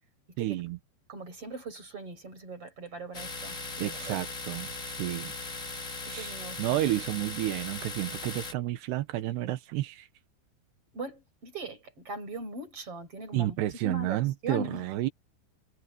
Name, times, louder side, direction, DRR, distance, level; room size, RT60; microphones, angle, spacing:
voice 1, 0.4-0.8 3.8-4.7 5.0-5.3 6.1-6.3 6.6-10.1 13.3-15.1, right 15 dB, 85° right, 3.3 m, -31 dB
voice 2, 1.1-4.2 6.0-6.8 10.9-14.9, right 2 dB, 35° right, 8.9 m, -40 dB
Domestic sounds home sounds, 3.1-8.5, left 3 dB, 20° left, 2.6 m, -39 dB
omnidirectional pair, 4.7 m